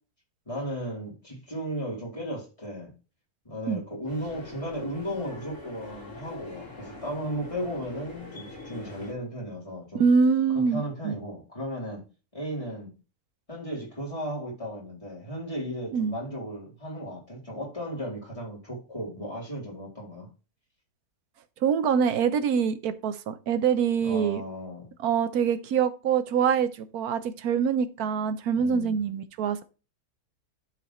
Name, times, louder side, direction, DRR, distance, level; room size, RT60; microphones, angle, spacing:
voice 1, 0.5-2.9 3.4-10.0 10.5-12.1 12.3-12.9 13.5-20.3 24.0-24.9 28.5-29.0, equal, 20° left, 3.8 m, -35 dB
sound 1, 4.1-9.1, left 3 dB, 55° left, 2.9 m, -43 dB
voice 2, 10.0-11.2 15.9-16.1 21.6-24.4 25.0-29.6, right 6 dB, 90° right, 1.3 m, -25 dB
11.5 x 4.8 x 3.1 m
omnidirectional pair, 1.6 m